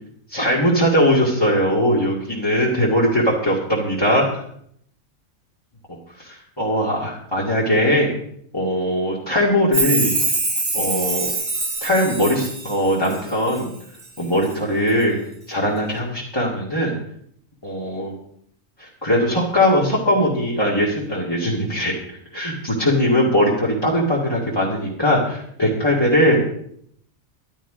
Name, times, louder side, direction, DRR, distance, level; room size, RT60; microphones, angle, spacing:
voice 1, 0.3-4.4 6.2-8.1 8.5-10.2 10.7-11.3 11.8-13.7 14.2-15.2 15.5-16.9 17.6-18.1 18.8-21.9 22.3-26.5, equal, 20° left, -5 dB, 2.3 m, -20 dB
Chime, 9.7-13.6 14.0-14.5 14.9-15.0, right 3 dB, 40° right, 2.0 m, -24 dB
12.0 x 11.5 x 5.1 m, 0.67 s
omnidirectional pair, 1.4 m